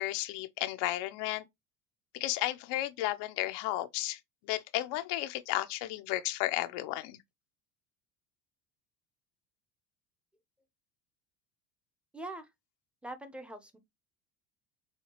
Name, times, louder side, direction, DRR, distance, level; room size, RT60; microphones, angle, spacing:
voice 1, 0.0-1.4 2.1-4.2 4.5-7.2, left 15 dB, 60° left, 0.7 m, -33 dB
voice 2, 12.1-12.5 13.0-13.8, right 1 dB, ahead, 0.8 m, -43 dB
5.6 x 2.3 x 2.9 m
hypercardioid pair, 80°, 48 cm